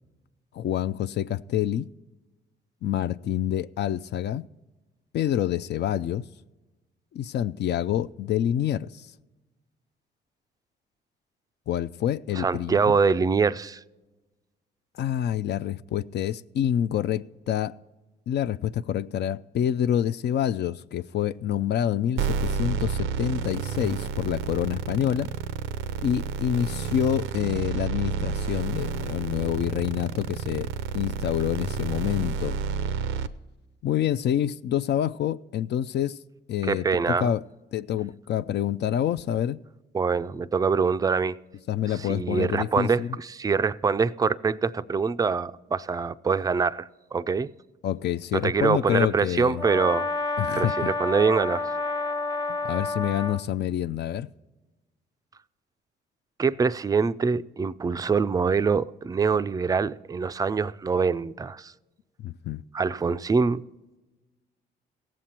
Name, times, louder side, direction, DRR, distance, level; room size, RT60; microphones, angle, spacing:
voice 1, 0.5-1.9 2.8-4.4 5.1-6.2 7.1-9.1 11.7-13.0 15.0-17.7 18.3-25.3 26.0-30.7 30.9-32.6 33.8-36.2 36.5-37.4 37.7-39.6 41.7-43.2 47.8-49.6 50.4-50.9 52.5-54.3 62.2-62.6, left 10 dB, 60° left, 0.4 m, -27 dB
voice 2, 12.4-13.8 36.6-37.3 39.9-41.4 42.0-47.5 48.4-50.1 50.5-51.7 56.4-61.7 62.7-63.6, right 5 dB, 20° right, 0.3 m, -24 dB
sound 1, 22.2-33.3, right 6 dB, 85° right, 0.6 m, -30 dB
Brass instrument, 49.6-53.4, left 3 dB, 15° left, 0.8 m, -29 dB
17.0 x 7.5 x 4.3 m
cardioid pair, 90°, 20 cm